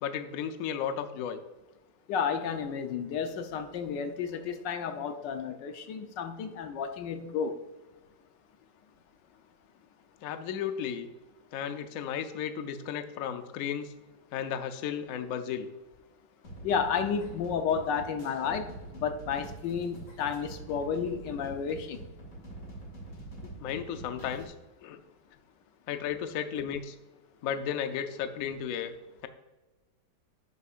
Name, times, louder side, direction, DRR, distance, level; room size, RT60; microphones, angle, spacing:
voice 1, 0.0-1.4 10.2-11.1 11.5-13.9 14.3-15.7 23.6-24.5 24.8-25.0 25.9-27.0 27.4-28.9, left 8 dB, 65° left, 1.0 m, -34 dB
voice 2, 2.1-7.6 16.6-22.0, left 6 dB, 85° left, 1.4 m, -32 dB
sound 1, 16.4-24.4, right 1 dB, 45° left, 2.6 m, -45 dB
10.5 x 8.2 x 2.5 m
omnidirectional pair, 1.9 m